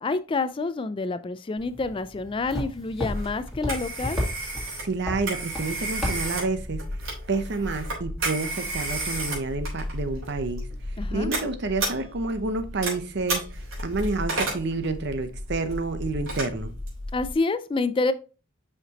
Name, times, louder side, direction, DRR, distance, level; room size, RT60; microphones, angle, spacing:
voice 1, 0.0-4.2 11.0-11.3 17.1-18.1, left 3 dB, 25° left, 0.3 m, -28 dB
sound 1, 1.6-6.8, left 1 dB, ahead, 2.3 m, -34 dB
Telephone, 3.1-17.3, right 1 dB, 85° right, 3.6 m, -32 dB
voice 2, 4.8-6.8 7.3-13.4 13.8-16.7, right 3 dB, 55° right, 0.8 m, -29 dB
5.9 x 5.5 x 2.9 m
head